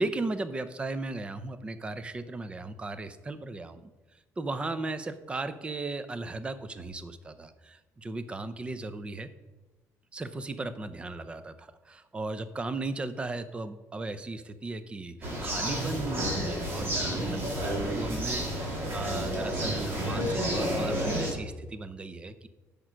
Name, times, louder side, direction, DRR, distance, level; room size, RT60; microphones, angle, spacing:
voice 1, 0.0-3.8 4.4-9.3 10.1-18.5 18.9-22.5, right 2 dB, 20° right, 12 dB, 0.6 m, -36 dB
sound 1, 15.2-21.3, equal, 40° right, 2.4 m, -30 dB
10.5 x 5.2 x 6.2 m, 1.1 s
cardioid pair, 145°, 6 cm